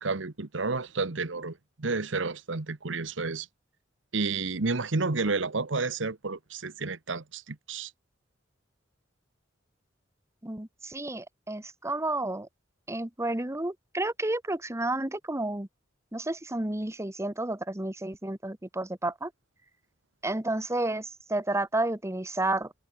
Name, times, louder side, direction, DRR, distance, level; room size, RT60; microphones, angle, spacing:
voice 1, 0.0-3.5 4.1-7.9, right 3 dB, 75° right, 1.2 m, -31 dB
voice 2, 10.4-12.5 12.9-15.7 16.1-19.3 20.2-22.7, right 2 dB, 15° right, 1.2 m, -31 dB
head